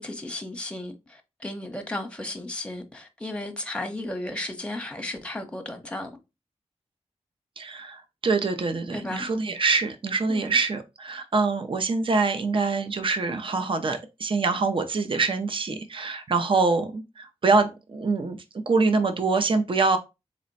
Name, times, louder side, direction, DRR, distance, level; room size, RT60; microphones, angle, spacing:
voice 1, 0.0-6.1 8.9-9.3 10.3-10.6, left 1 dB, 10° left, 0.8 m, -34 dB
voice 2, 7.6-18.4 18.7-20.0, right 4 dB, 50° right, 0.5 m, -25 dB
4.1 x 2.1 x 3.9 m
wide cardioid pair, 80°, 11 cm